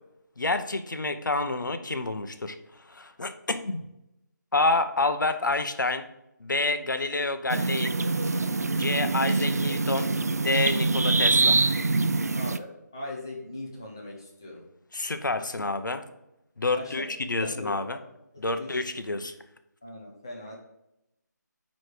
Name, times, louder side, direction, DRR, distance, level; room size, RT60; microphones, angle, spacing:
voice 1, 0.4-2.5 2.9-3.8 4.5-6.1 6.4-7.9 8.8-11.6 14.9-16.0 16.6-18.0 18.4-19.3, left 2 dB, 80° left, 9 dB, 0.9 m, -28 dB
sound 1, 7.5-12.6, right 3 dB, 55° right, 0.4 m, -24 dB
voice 2, 12.3-14.6 16.7-18.1 18.5-18.8 19.8-20.6, left 2 dB, 15° left, -3 dB, 0.7 m, -40 dB
9.2 x 3.2 x 4.9 m, 0.85 s
figure-of-eight pair, 180°, 10 cm